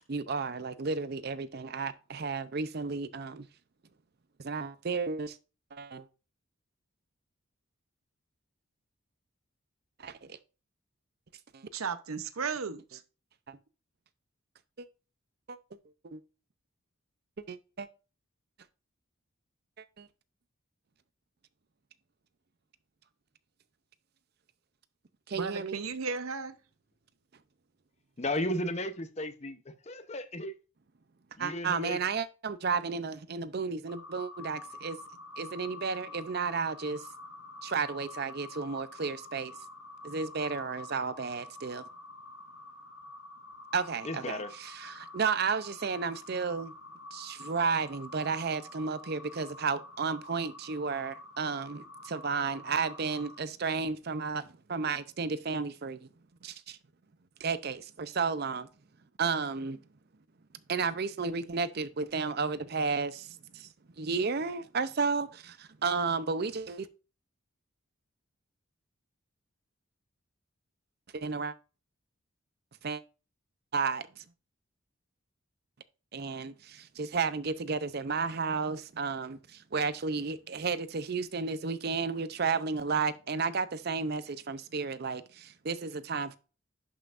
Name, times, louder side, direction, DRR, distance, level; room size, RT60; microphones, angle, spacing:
voice 1, 0.1-3.5 4.4-5.4 5.7-6.1 10.0-10.4 11.5-11.6 13.5-13.6 14.8-14.9 15.5-15.6 16.0-16.2 17.5-17.9 19.8-20.1 25.3-25.8 31.4-35.0 35.4-37.1 37.6-39.5 40.0-41.9 43.7-46.7 47.1-56.1 56.4-56.8 57.4-58.7 59.2-59.8 60.7-63.7 64.0-66.9 71.1-71.5 72.8-73.0 73.7-74.2 76.1-86.4, right 5 dB, 50° right, 0.6 m, -33 dB
voice 2, 11.7-13.0 25.3-26.6, right 5 dB, 85° right, 0.8 m, -35 dB
voice 3, 28.2-30.6 31.4-32.0 44.0-44.5, left 1 dB, 30° left, 0.8 m, -34 dB
sound 1, 33.9-53.4, left 2 dB, 85° left, 4.2 m, -47 dB
11.0 x 5.7 x 2.5 m
head